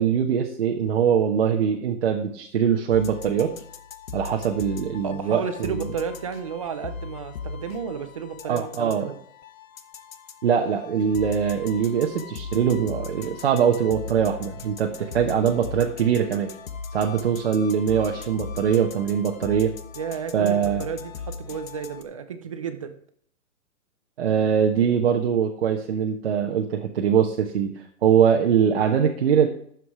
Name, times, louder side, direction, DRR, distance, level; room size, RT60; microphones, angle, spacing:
voice 1, 0.0-3.5 4.1-5.9 8.4-9.1 10.4-16.5 16.9-19.7 20.3-20.8 24.2-29.5, right 8 dB, 45° right, 1 dB, 1.2 m, -22 dB
sound 1, 2.9-22.0, left 5 dB, 70° left, 1.4 m, -39 dB
voice 2, 5.0-9.2 20.0-22.9, right 6 dB, 25° right, 9 dB, 0.6 m, -32 dB
11.5 x 7.6 x 4.8 m, 0.65 s
hypercardioid pair, 165°, 42 cm